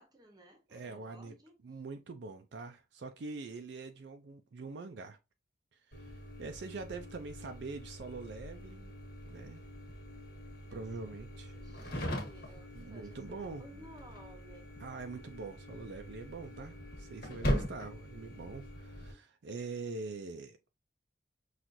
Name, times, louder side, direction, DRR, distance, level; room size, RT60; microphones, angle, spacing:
voice 1, 0.0-1.8 10.7-11.3 11.5-14.7, right 1 dB, 20° right, 0.9 m, -57 dB
voice 2, 0.7-1.3 1.6-5.2 5.9-8.9 9.3-9.6 10.7-11.6 12.7-13.6 14.8-20.6, right 3 dB, 65° right, 0.4 m, -44 dB
sound 1, 5.9-19.1, equal, 50° left, 1.3 m, -41 dB
5.9 x 2.4 x 2.6 m
head